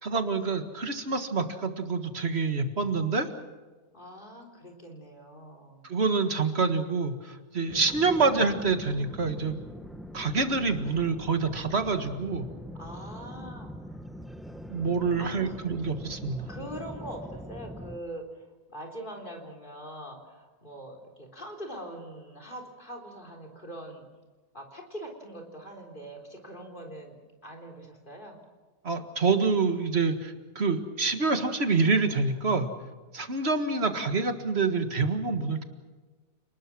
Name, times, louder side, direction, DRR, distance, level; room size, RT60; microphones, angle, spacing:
voice 1, 0.0-3.3 5.8-9.6 10.1-12.5 14.7-16.5 28.8-32.7 33.1-35.6, right 4 dB, 45° right, 8 dB, 1.9 m, -27 dB
voice 2, 3.9-5.8 12.7-13.8 15.2-15.6 16.5-18.4 18.7-24.0 24.5-27.2 27.4-28.4, right 1 dB, 30° left, 3 dB, 4.1 m, -42 dB
sound 1, 7.7-18.0, equal, ahead, 1.1 m, -42 dB
29.5 x 20.0 x 6.2 m, 1.3 s
omnidirectional pair, 1.6 m